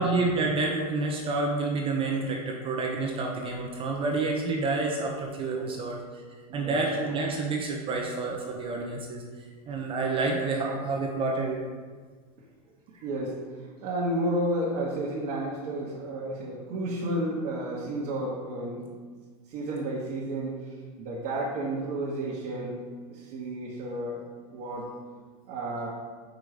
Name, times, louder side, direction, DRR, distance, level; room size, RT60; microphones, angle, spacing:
voice 1, 0.0-6.0 6.5-9.2 9.7-11.6, right 3 dB, 25° right, 0 dB, 0.8 m, -28 dB
voice 2, 6.5-6.8 13.0-13.4 13.8-18.9 19.5-22.8 23.1-24.2 24.5-24.9 25.5-25.9, right 1 dB, 50° right, -5 dB, 1.2 m, -32 dB
5.2 x 3.7 x 4.9 m, 1.5 s
hypercardioid pair, 115°, 20 cm